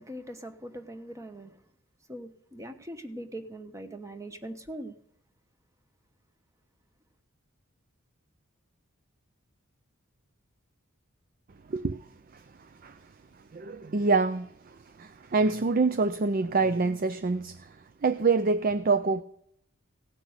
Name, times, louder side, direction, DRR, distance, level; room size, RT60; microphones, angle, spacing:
voice 1, 0.0-1.6 2.1-4.9, right 1 dB, 15° right, 1.0 m, -41 dB
voice 2, 13.5-17.7 18.0-19.2, right 4 dB, 40° right, 0.4 m, -26 dB
17.0 x 6.1 x 7.9 m
head